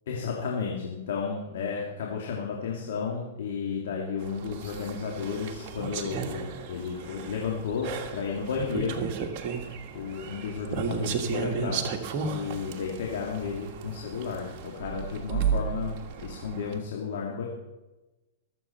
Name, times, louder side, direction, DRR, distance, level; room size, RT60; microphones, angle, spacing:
voice 1, 0.1-9.0 9.9-17.5, left 6 dB, 70° left, -1 dB, 2.4 m, -33 dB
sound 1, 4.2-16.8, right 6 dB, 40° right, 1.6 m, -34 dB
23.0 x 7.7 x 4.4 m, 1.1 s
hypercardioid pair, 130°, 0 cm